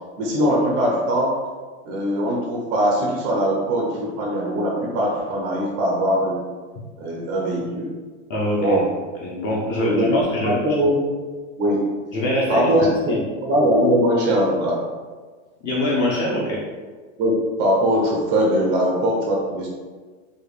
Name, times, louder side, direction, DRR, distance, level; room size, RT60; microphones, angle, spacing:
voice 1, 0.2-1.4 1.9-6.4 7.0-7.9 8.6-8.9 9.8-11.0 11.6-11.8 12.5-13.1 13.4-14.8 17.2-19.7, equal, 25° right, -2 dB, 0.4 m, -21 dB
voice 2, 8.3-8.8 9.2-10.8 12.1-13.2 15.6-16.6, left 1 dB, 30° left, -5 dB, 0.5 m, -24 dB
5.0 x 2.2 x 3.2 m, 1.4 s
supercardioid pair, 160°, 39 cm